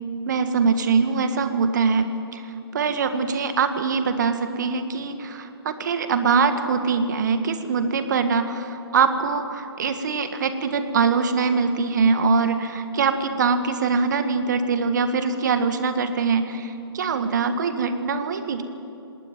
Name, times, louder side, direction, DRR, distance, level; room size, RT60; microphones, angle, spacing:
voice 1, 0.2-2.4 2.7-18.6, right 5 dB, 45° right, 9 dB, 1.7 m, -23 dB
19.0 x 19.0 x 9.1 m, 2.6 s
figure-of-eight pair, 130°, 13 cm